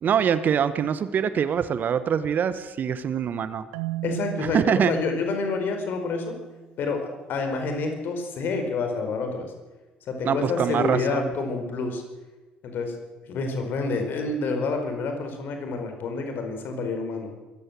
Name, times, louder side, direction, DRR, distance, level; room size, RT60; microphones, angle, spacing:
voice 1, 0.0-3.6 4.4-4.9 10.2-11.3, right 8 dB, 45° right, 13 dB, 1.4 m, -24 dB
Marimba xylophone, 3.7-6.7, right 16 dB, 65° right, 0.9 m, -36 dB
voice 2, 4.0-6.3 6.8-9.5 10.1-12.0 12.6-12.9 13.3-17.3, left 4 dB, 50° left, 5 dB, 4.7 m, -28 dB
23.5 x 15.0 x 7.8 m, 1.2 s
figure-of-eight pair, 50°, 4 cm